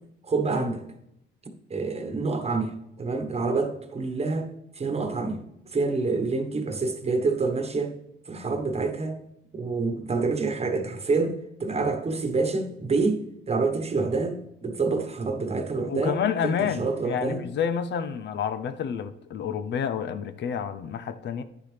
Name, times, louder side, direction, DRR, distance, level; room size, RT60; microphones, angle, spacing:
voice 1, 0.2-0.9 1.7-5.4 5.7-7.9 8.3-9.2 9.5-17.4, right 3 dB, 30° right, 1.2 m, -27 dB
voice 2, 15.9-21.4, left 7 dB, 65° left, 0.6 m, -29 dB
9.6 x 6.6 x 3.3 m
cardioid pair, 90°, 20 cm